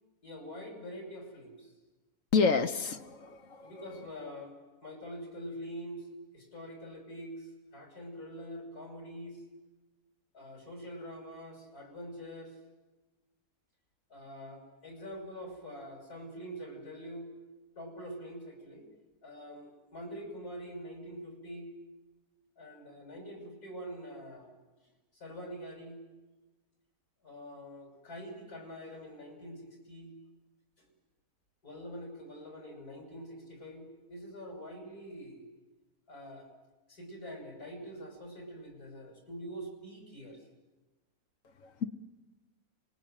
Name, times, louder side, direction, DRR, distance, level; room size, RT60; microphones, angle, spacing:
voice 1, 0.2-1.7 3.6-6.1 6.3-9.4 10.3-12.6 14.1-17.3 17.7-18.9 19.2-21.7 22.6-24.5 25.1-26.0 27.2-30.1 30.8-30.9 31.6-35.5 36.1-36.5 36.9-40.4, equal, 75° left, 3 dB, 6.6 m, -45 dB
voice 2, 2.3-3.7 41.6-41.8, left 5 dB, 60° left, 8 dB, 1.3 m, -29 dB
25.5 x 21.5 x 9.0 m, 1.1 s
omnidirectional pair, 1.6 m